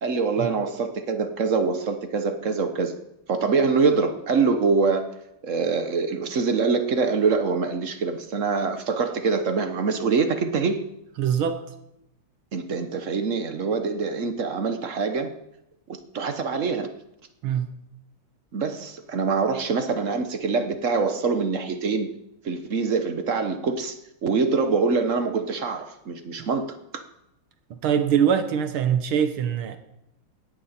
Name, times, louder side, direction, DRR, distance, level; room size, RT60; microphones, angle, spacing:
voice 1, 0.0-3.0 3.3-5.1 5.4-10.8 12.5-15.3 15.9-16.9 18.5-22.1 22.4-27.0, right 4 dB, 45° right, 1.1 m, -24 dB
voice 2, 11.2-11.7 17.4-17.7 26.4-26.5 27.7-29.8, right 8 dB, 75° right, 1.9 m, -23 dB
17.5 x 10.5 x 4.4 m
omnidirectional pair, 2.3 m